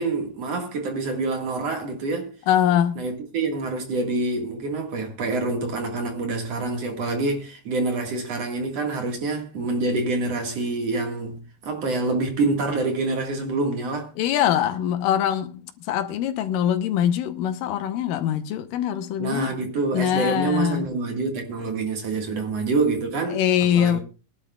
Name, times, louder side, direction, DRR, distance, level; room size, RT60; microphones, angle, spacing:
voice 1, 0.0-2.3 3.0-14.1 19.2-23.4 23.7-24.0, right 3 dB, 55° right, 2.6 m, -26 dB
voice 2, 2.5-3.0 14.2-20.9 23.3-24.0, left 10 dB, 85° left, 2.6 m, -23 dB
21.0 x 11.5 x 2.3 m
omnidirectional pair, 3.9 m